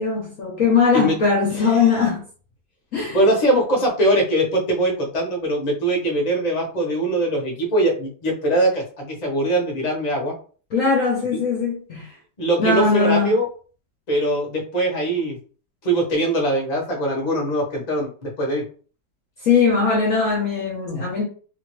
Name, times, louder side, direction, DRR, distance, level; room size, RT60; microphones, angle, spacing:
voice 1, 0.0-2.2 2.9-3.2 10.7-12.2 12.6-13.4 19.4-21.2, left 4 dB, 60° left, -2 dB, 0.9 m, -20 dB
voice 2, 3.1-10.3 11.3-11.4 12.4-13.5 14.1-15.4 15.8-18.6, right 1 dB, 30° left, -1 dB, 0.7 m, -22 dB
2.9 x 2.5 x 3.0 m, 0.40 s
omnidirectional pair, 2.0 m